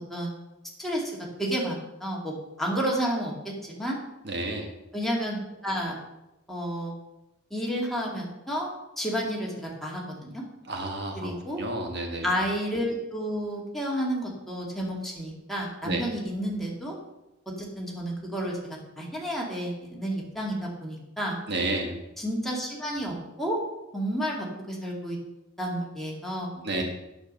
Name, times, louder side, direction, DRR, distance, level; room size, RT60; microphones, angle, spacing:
voice 1, 0.8-1.1 1.4-4.0 4.9-5.4 5.6-5.9 6.5-7.0 7.5-8.7 9.0-10.4 11.2-11.6 12.2-17.0 17.5-21.4 22.2-23.6 23.9-25.2 25.6-26.8, equal, ahead, -3 dB, 2.1 m, -31 dB
voice 2, 4.2-4.7 10.7-11.3 11.6-12.3 15.8-16.0 21.5-22.0 26.6-26.8, right 2 dB, 60° right, 3 dB, 1.4 m, -30 dB
9.2 x 7.2 x 5.4 m, 0.94 s
head